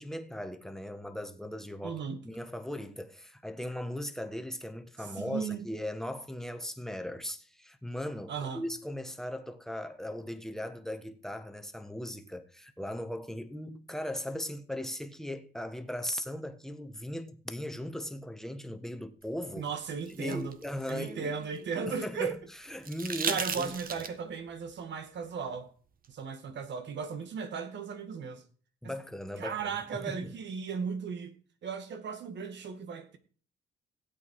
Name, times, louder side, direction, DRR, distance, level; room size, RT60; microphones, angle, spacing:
voice 1, 0.0-2.0 2.2-19.7 20.2-21.3 21.9-22.4 22.7-23.7 28.8-30.3, left 1 dB, ahead, 1.5 m, -38 dB
voice 2, 1.8-2.2 5.2-5.6 8.3-8.6 19.6-20.6 20.9-22.4 23.2-25.7 26.1-28.4 28.8-28.9 29.4-31.3 31.6-33.2, right 6 dB, 65° right, 2.1 m, -36 dB
sound 1, 19.7-21.9 22.8-24.4 26.0-26.1, right 6 dB, 45° right, 1.4 m, -37 dB
16.0 x 8.4 x 4.8 m
cardioid pair, 90°, 20 cm